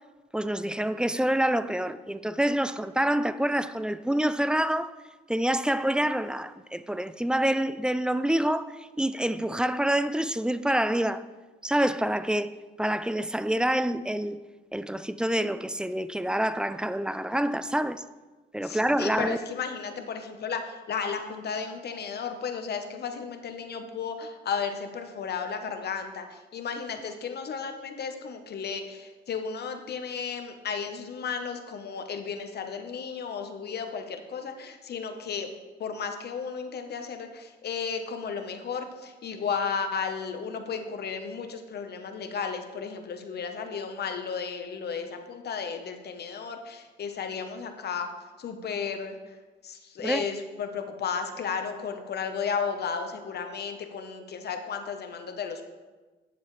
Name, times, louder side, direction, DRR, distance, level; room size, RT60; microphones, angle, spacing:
voice 1, 0.3-4.9 5.3-11.2 11.6-14.4 14.7-18.0 18.5-19.4 50.0-50.2, right 1 dB, 5° right, 0.3 m, -27 dB
voice 2, 18.6-35.5 35.8-48.1 48.4-49.4 49.6-55.6, left 6 dB, 55° left, 1.0 m, -34 dB
10.5 x 7.1 x 3.2 m
cardioid pair, 90°, 20 cm